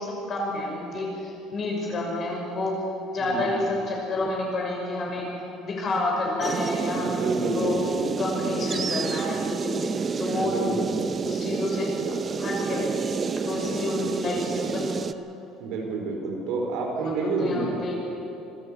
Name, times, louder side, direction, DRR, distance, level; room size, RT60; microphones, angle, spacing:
voice 1, 0.0-2.8 3.1-5.3 5.6-7.8 8.2-10.8 11.2-15.0 17.1-18.0, left 2 dB, 35° left, -1 dB, 5.8 m, -29 dB
voice 2, 3.2-3.6 6.9-8.1 10.4-10.9 13.6-13.8 15.6-17.8, right 3 dB, 70° right, 1 dB, 4.7 m, -29 dB
sound 1, 6.4-15.1, right 5 dB, 25° right, 0.6 m, -29 dB
25.5 x 13.5 x 8.0 m, 3.0 s
cardioid pair, 150°, 0 cm